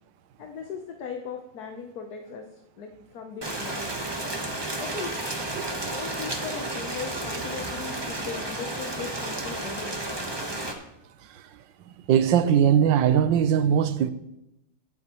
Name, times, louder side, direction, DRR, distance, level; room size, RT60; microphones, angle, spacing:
voice 1, 0.4-4.1 4.8-5.1 5.7-10.0, left 6 dB, 60° left, 1.3 m, -38 dB
Rain, 3.4-10.7, right 2 dB, 15° right, 0.9 m, -32 dB
voice 2, 11.9-14.1, right 9 dB, 70° right, 1.4 m, -21 dB
23.5 x 8.7 x 3.1 m
omnidirectional pair, 2.2 m